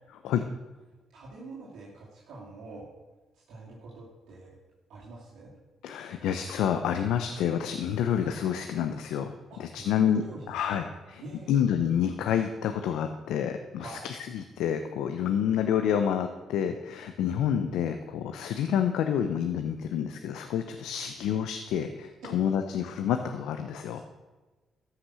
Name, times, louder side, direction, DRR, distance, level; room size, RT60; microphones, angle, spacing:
voice 1, 1.1-2.9 3.3-4.6 4.9-5.5 9.5-10.9 11.2-11.7 13.8-14.1 22.2-22.4 23.9-24.0, right 2 dB, 80° right, -7 dB, 2.6 m, -44 dB
voice 2, 5.8-9.3 9.6-10.8 11.1-11.2 11.5-24.0, left 9 dB, 85° left, 7 dB, 0.6 m, -28 dB
13.5 x 5.9 x 6.2 m, 1.2 s
cardioid pair, 90°, 0 cm